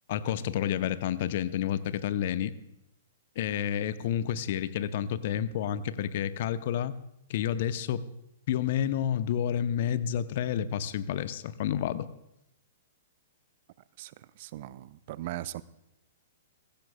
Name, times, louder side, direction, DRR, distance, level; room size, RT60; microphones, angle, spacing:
voice 1, 0.1-2.5 3.4-6.9 7.3-8.0 8.5-12.1, left 10 dB, 45° left, 14 dB, 0.7 m, -30 dB
voice 2, 14.0-15.6, right 15 dB, 45° right, 17 dB, 0.5 m, -39 dB
22.0 x 15.5 x 2.3 m, 0.86 s
figure-of-eight pair, 110°, 0 cm